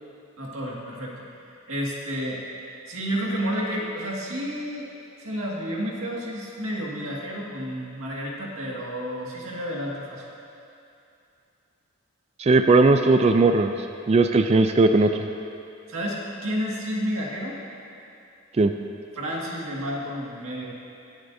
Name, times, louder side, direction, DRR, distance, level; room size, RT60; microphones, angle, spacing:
voice 1, 0.4-1.2 1.7-2.4 2.9-4.9 5.2-10.2 15.9-17.6 19.2-20.8, equal, 80° right, -3 dB, 1.9 m, -30 dB
voice 2, 12.4-13.7 14.1-15.1 18.6-18.7, right 3 dB, 30° right, 7 dB, 0.3 m, -18 dB
23.0 x 8.0 x 2.7 m, 2.6 s
head